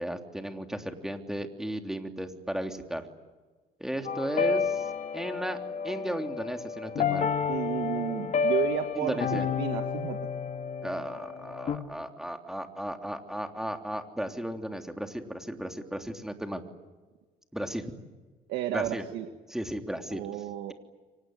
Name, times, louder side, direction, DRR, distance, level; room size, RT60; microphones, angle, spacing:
voice 1, 0.0-3.0 3.8-5.6 5.8-7.3 8.9-9.5 10.8-16.6 17.5-17.9 18.7-19.0 19.5-20.2, equal, 5° right, 5 dB, 3.2 m, -35 dB
sound 1, 4.0-11.8, left 6 dB, 45° left, 2.5 m, -30 dB
voice 2, 7.5-10.2 18.5-19.3 20.1-20.7, right 12 dB, 85° right, 6 dB, 1.9 m, -32 dB
29.5 x 24.5 x 8.0 m, 1.3 s
cardioid pair, 110°, 17 cm